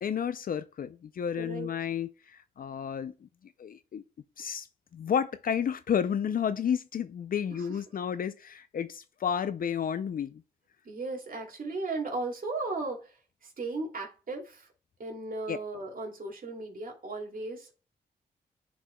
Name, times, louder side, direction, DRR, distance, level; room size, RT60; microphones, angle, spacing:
voice 1, 0.0-3.1 3.6-4.0 4.4-4.7 4.9-10.4 15.5-15.6, left 8 dB, 60° left, 0.4 m, -31 dB
voice 2, 1.4-1.7 7.5-7.8 10.8-14.7 15.0-17.7, right 3 dB, 55° right, 2.5 m, -36 dB
10.0 x 4.7 x 2.2 m
cardioid pair, 60°, 17 cm